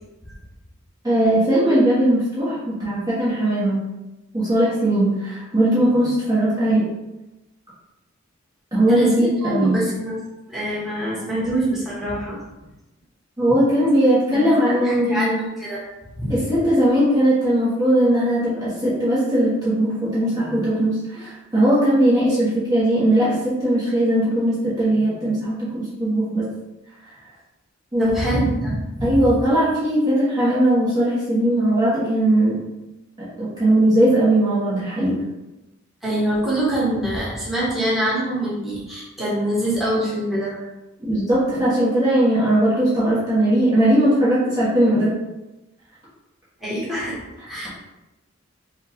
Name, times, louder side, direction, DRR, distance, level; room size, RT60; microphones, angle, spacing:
voice 1, 1.0-3.8 4.3-6.9 8.7-9.8 13.4-15.5 16.3-26.5 27.9-28.1 29.0-32.6 33.2-35.2 41.1-45.1, right 1 dB, 20° right, -10 dB, 1.3 m, -19 dB
voice 2, 8.9-10.2 10.5-12.4 14.3-14.5 14.8-15.3 15.6-15.8 16.2-16.3 28.0-29.1 36.0-40.6 46.6-47.7, right 1 dB, ahead, -8 dB, 1.4 m, -24 dB
5.3 x 2.4 x 3.6 m, 0.99 s
head